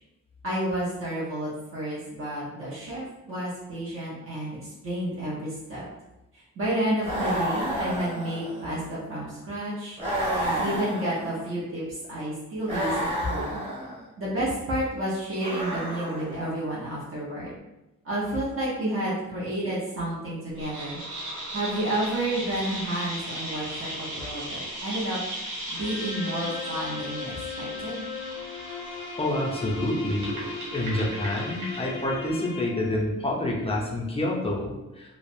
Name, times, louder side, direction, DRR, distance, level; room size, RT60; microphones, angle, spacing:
voice 1, 0.4-5.8 6.3-10.0 10.4-13.6 14.2-17.5 18.0-21.0 21.5-25.2 25.7-28.0, right 1 dB, 45° right, -8 dB, 0.8 m, -30 dB
sound 1, 7.0-8.8 10.0-11.5 12.6-14.0 15.4-16.5, equal, 20° right, 1.0 m, -30 dB
sound 2, 20.6-32.1, right 1 dB, 80° right, 1.0 m, -37 dB
sound 3, 25.7-33.0, left 4 dB, 80° left, 0.6 m, -38 dB
voice 2, 29.2-30.3 30.7-35.2, left 1 dB, 20° left, -3 dB, 0.4 m, -28 dB
3.2 x 2.0 x 2.6 m, 0.99 s
wide cardioid pair, 150°, 30 cm